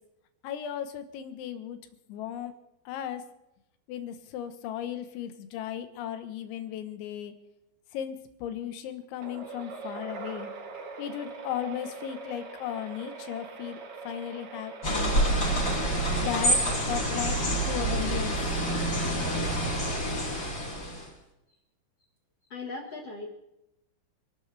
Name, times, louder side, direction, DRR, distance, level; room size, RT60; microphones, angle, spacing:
voice 1, 0.4-1.8 2.1-2.5 2.9-3.2 3.9-7.3 7.9-10.5 11.0-15.2 16.2-17.4 17.7-18.5, left 10 dB, 85° left, 8 dB, 3.6 m, -36 dB
sound 1, 9.2-18.0, right 4 dB, 75° right, 1.3 m, -42 dB
sound 2, 14.8-21.1, right 1 dB, 25° left, 7.6 m, -27 dB
voice 2, 22.5-23.3, left 3 dB, 60° left, 1 dB, 1.7 m, -38 dB
28.5 x 12.5 x 3.4 m, 0.89 s
omnidirectional pair, 5.2 m